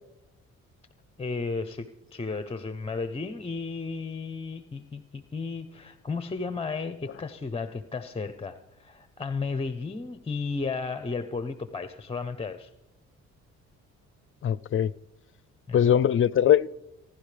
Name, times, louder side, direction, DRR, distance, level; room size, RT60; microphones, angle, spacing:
voice 1, 1.2-12.7 15.7-16.0, left 4 dB, 20° left, 0.8 m, -34 dB
voice 2, 14.4-14.9 15.7-16.7, left 9 dB, 45° left, 0.5 m, -21 dB
30.0 x 11.5 x 3.4 m
cardioid pair, 90°, 30 cm